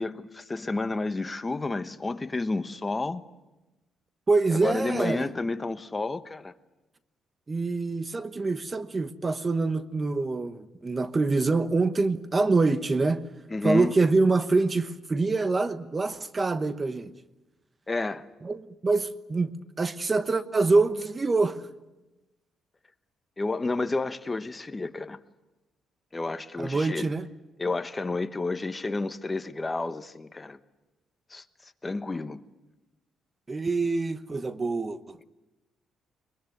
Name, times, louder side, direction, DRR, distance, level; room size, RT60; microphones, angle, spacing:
voice 1, 0.0-3.2 4.5-6.5 13.5-13.9 17.9-18.3 23.4-25.2 26.1-27.1 27.6-30.6 31.3-32.4, left 3 dB, 20° left, 1.1 m, -30 dB
voice 2, 4.3-5.3 7.5-13.2 13.6-17.1 18.4-21.6 26.6-27.3 33.5-35.2, right 3 dB, 30° right, 1.1 m, -25 dB
22.0 x 21.5 x 9.4 m
cardioid pair, 90°, 0 cm